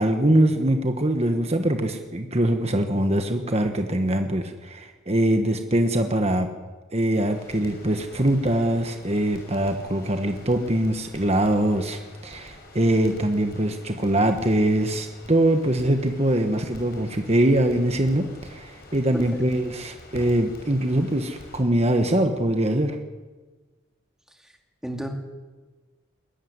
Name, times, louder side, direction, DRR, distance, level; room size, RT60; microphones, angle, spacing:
voice 1, 0.0-6.5 6.9-23.0, right 1 dB, 30° right, 6 dB, 1.3 m, -23 dB
Crackle, 7.3-21.6, left 1 dB, 50° left, 6.0 m, -46 dB
voice 2, 19.1-19.4 24.4-24.5 24.8-25.1, right 1 dB, 5° right, 2 dB, 2.7 m, -32 dB
22.0 x 14.0 x 9.7 m, 1.3 s
head